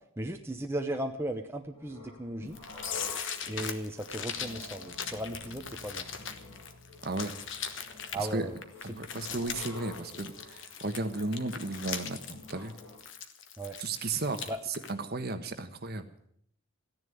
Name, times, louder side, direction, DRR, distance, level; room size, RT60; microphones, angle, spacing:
voice 1, 0.2-2.6 3.5-6.0 8.1-8.6 8.9-9.0 13.6-13.8 14.5-14.6, right 1 dB, 10° right, 3 dB, 0.9 m, -36 dB
sound 1, 1.7-13.0, left 2 dB, 20° left, 7.4 m, -49 dB
sound 2, 2.5-14.5 14.7-14.9, left 7 dB, 55° left, 1.3 m, -40 dB
sound 3, 4.9-9.8, left 2 dB, 75° right, 1.8 m, -56 dB
voice 2, 7.0-7.3 8.2-8.4 8.8-12.7 13.8-16.1, right 2 dB, 45° right, 8 dB, 1.3 m, -34 dB
14.5 x 10.5 x 9.3 m, 0.67 s
head